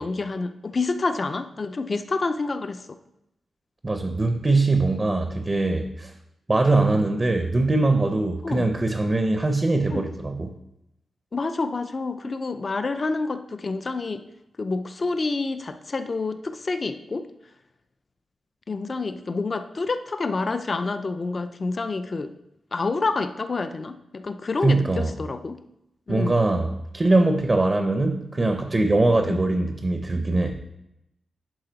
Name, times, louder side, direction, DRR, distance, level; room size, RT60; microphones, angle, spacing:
voice 1, 0.0-3.0 6.9-7.0 8.4-8.7 9.9-10.1 11.3-14.3 14.6-17.3 18.7-22.4 22.7-25.6 26.1-26.4 29.3-29.4, left 3 dB, 35° left, 10 dB, 0.4 m, -28 dB
voice 2, 3.8-6.1 6.5-10.5 24.6-25.1 26.1-30.6, right 2 dB, 25° right, 6 dB, 0.6 m, -22 dB
11.0 x 3.9 x 3.9 m, 0.86 s
wide cardioid pair, 135°, 0 cm